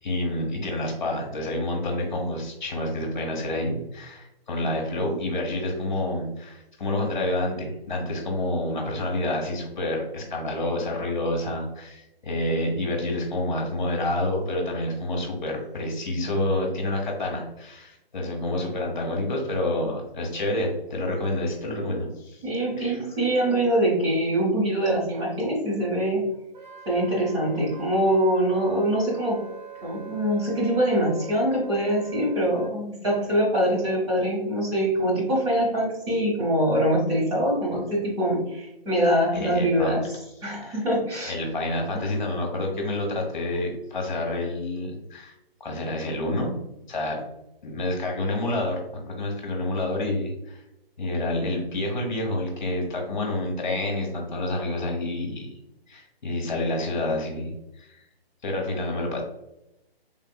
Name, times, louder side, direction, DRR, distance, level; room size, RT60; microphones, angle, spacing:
voice 1, 0.0-22.4 22.8-23.0 39.3-40.0 40.6-40.8 41.3-45.3 45.6-46.6 46.9-47.2 47.6-50.6 51.0-55.5 55.9-58.0 58.4-59.2, left 1 dB, 50° left, 0 dB, 1.0 m, -28 dB
voice 2, 22.4-26.2 26.8-29.4 29.8-40.0 40.4-41.3, right 1 dB, 30° right, -5 dB, 1.5 m, -24 dB
Wind instrument woodwind instrument, 26.5-32.7, right 5 dB, 50° right, 0.8 m, -43 dB
3.7 x 3.5 x 2.2 m, 0.88 s
hypercardioid pair, 165°, 31 cm